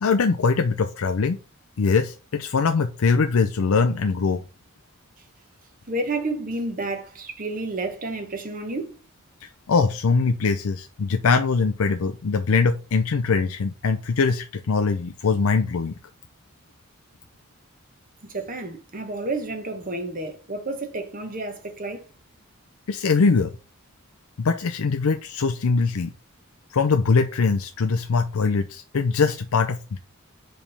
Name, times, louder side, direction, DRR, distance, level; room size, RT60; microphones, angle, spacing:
voice 1, 0.0-1.4 1.8-4.4 9.7-15.9 22.9-23.5 24.4-26.1 26.7-30.0, left 4 dB, 85° left, 0.5 m, -22 dB
voice 2, 5.9-9.0 18.2-22.0, right 2 dB, 40° right, 1.1 m, -30 dB
5.1 x 3.5 x 5.4 m
head